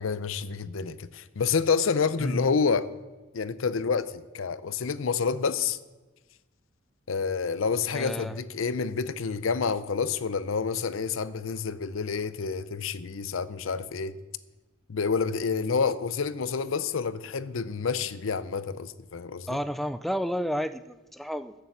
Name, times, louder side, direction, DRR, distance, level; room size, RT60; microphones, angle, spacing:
voice 1, 0.0-2.9 3.3-5.8 7.1-14.1 14.9-19.6, left 5 dB, 85° left, 15 dB, 0.6 m, -28 dB
voice 2, 7.9-8.4 19.5-21.5, equal, ahead, 11 dB, 0.3 m, -31 dB
13.0 x 6.8 x 8.0 m, 1.2 s
head